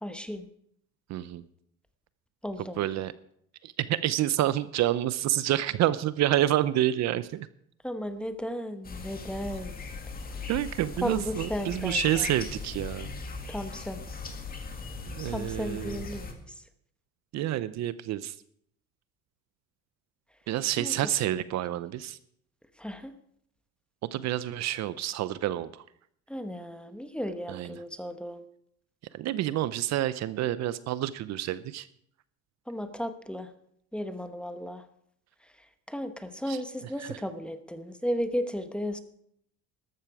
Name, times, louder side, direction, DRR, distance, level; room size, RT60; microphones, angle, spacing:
voice 1, 0.0-0.5 2.4-2.8 7.8-9.8 11.0-12.2 13.5-14.0 15.3-16.4 20.8-20.9 22.8-23.1 26.3-28.4 32.7-33.5 33.9-34.8 35.9-39.0, equal, 5° left, 9 dB, 1.0 m, -34 dB
voice 2, 1.1-1.4 2.8-3.1 3.6-7.5 10.5-13.1 15.1-16.0 17.3-18.3 20.5-22.2 24.0-25.8 27.5-27.8 29.1-31.9 36.5-36.6 37.0-37.2, right 13 dB, 60° right, 16 dB, 0.7 m, -28 dB
sound 1, 8.8-16.3, left 4 dB, 30° left, 2.0 m, -38 dB
13.5 x 12.0 x 4.8 m, 0.69 s
cardioid pair, 125°, 32 cm